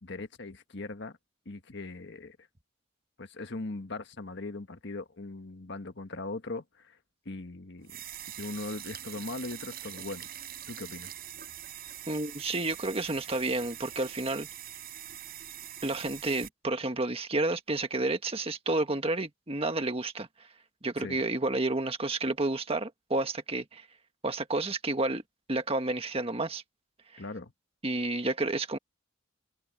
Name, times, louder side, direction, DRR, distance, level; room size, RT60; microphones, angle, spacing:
voice 1, 0.0-1.2 1.4-2.4 3.2-7.0 7.2-8.0 8.4-10.3 10.7-11.1 21.0-21.2 27.2-27.5, left 2 dB, 60° left, 1.5 m, -39 dB
sound 1, 7.8-16.5, right 11 dB, 50° right, 6.3 m, -43 dB
voice 2, 12.1-14.5 15.8-20.5 20.8-23.9 24.2-25.2 25.5-26.6 27.1-27.2 27.8-28.8, right 2 dB, 30° right, 1.6 m, -30 dB
head